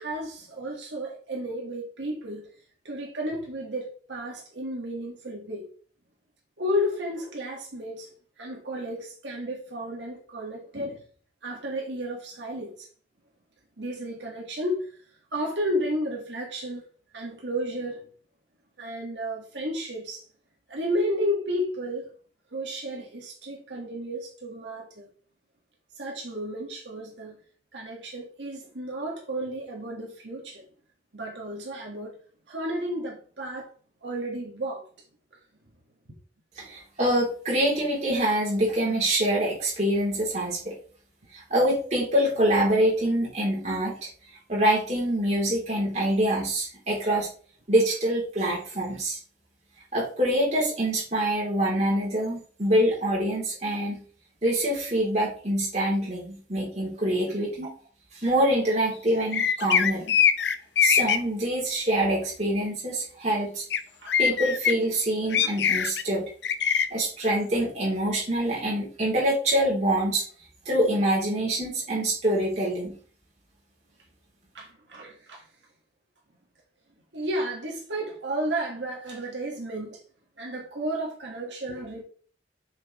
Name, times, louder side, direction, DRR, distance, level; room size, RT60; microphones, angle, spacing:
voice 1, 0.0-2.4 2.8-5.6 6.6-8.1 8.4-11.0 11.4-12.9 13.8-14.9 15.3-16.8 17.1-18.1 18.8-20.2 20.7-22.1 22.5-25.1 26.0-27.4 27.7-30.6 31.1-32.1 32.5-33.7 34.0-34.8 57.6-57.7 64.0-64.1 74.5-75.4 77.1-80.0 80.4-82.0, equal, 85° right, 1.8 m, -32 dB
voice 2, 36.6-40.7 41.3-44.1 44.5-47.3 47.7-49.2 49.9-54.0 54.4-57.7 58.2-60.1 60.8-63.6 64.2-66.3 66.9-70.2 70.7-73.0, right 1 dB, 40° right, 3.5 m, -25 dB
sound 1, 59.3-61.2 63.7-63.8 64.1-64.7 65.3-66.0 66.4-66.9, left 8 dB, 75° left, 0.6 m, -22 dB
6.7 x 6.5 x 3.2 m
head